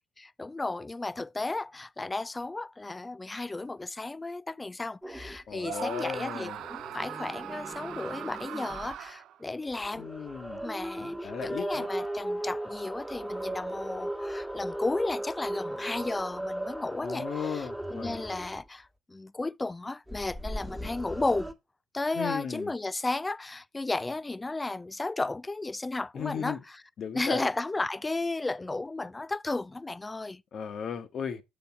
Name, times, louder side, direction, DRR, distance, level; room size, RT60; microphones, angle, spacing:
voice 1, 0.2-10.1 10.6-21.5 21.9-26.8 27.1-30.4, left 2 dB, 20° left, 0.3 m, -34 dB
sound 1, 5.0-5.4 6.5-9.0 9.7-18.7 20.1-21.5, right 1 dB, 5° right, 1.5 m, -37 dB
voice 2, 5.5-6.6 10.0-10.6 10.9-11.9 17.0-18.2 22.1-22.7 26.1-26.6 27.0-27.4 30.5-31.4, left 7 dB, 55° left, 1.1 m, -36 dB
Screaming, 5.6-9.4, right 11 dB, 65° right, 0.4 m, -40 dB
7.4 x 3.6 x 5.9 m
supercardioid pair, 70°, 0 cm